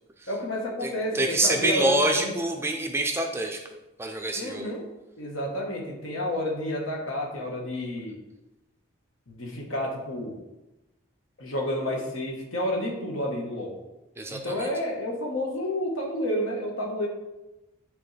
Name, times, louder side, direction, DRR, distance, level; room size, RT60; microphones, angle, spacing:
voice 1, 0.3-2.3 4.3-4.8 5.2-8.2 9.3-10.3 11.4-13.7 14.3-17.1, left 1 dB, 75° left, 0 dB, 1.4 m, -30 dB
voice 2, 0.8-3.6 4.0-4.7 14.2-14.7, right 1 dB, 10° right, 3 dB, 0.4 m, -26 dB
9.1 x 3.6 x 3.3 m, 1.0 s
head